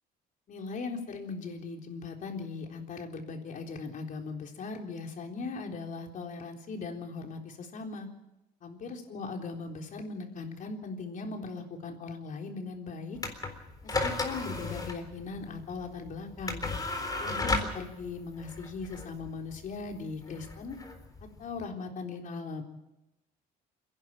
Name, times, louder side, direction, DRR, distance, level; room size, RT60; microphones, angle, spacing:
voice 1, 0.5-8.1 8.6-13.2 13.8-16.6 17.2-20.8 21.4-22.6, left 4 dB, 50° left, 3 dB, 3.9 m, -39 dB
sound 1, 13.2-21.6, left 3 dB, 20° left, 4.0 m, -35 dB
29.0 x 11.0 x 9.0 m, 0.94 s
cardioid pair, 110°, 17 cm